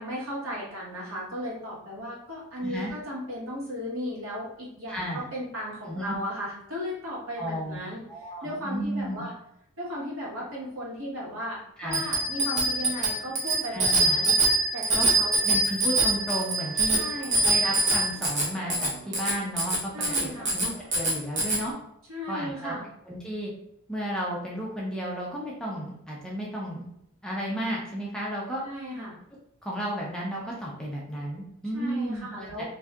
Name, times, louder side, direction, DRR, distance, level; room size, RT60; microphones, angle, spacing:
voice 1, 0.0-9.3 9.8-14.3 14.7-15.4 16.9-17.5 19.9-20.6 22.1-22.8 28.6-29.2 31.7-32.6, equal, 70° right, -5 dB, 1.2 m, -36 dB
voice 2, 4.9-5.2 5.9-6.2 7.4-7.8 8.1-9.2 11.8-12.1 13.7-14.2 14.9-15.1 15.4-17.0 17.4-21.8 22.3-22.7 23.1-23.5 23.9-26.9 27.2-28.6 29.6-32.6, equal, 5° left, -4 dB, 0.5 m, -33 dB
Bicycle bell, 11.9-21.6, right 2 dB, 30° right, 0.7 m, -24 dB
2.6 x 2.4 x 3.4 m, 0.78 s
head